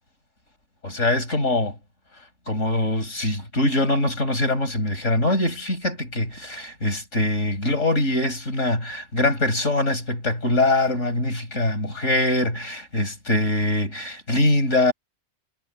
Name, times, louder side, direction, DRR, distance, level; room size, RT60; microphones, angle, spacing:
voice 1, 0.8-1.8 2.5-14.9, left 1 dB, 55° left, 7.0 m, -23 dB
omnidirectional pair, 1.5 m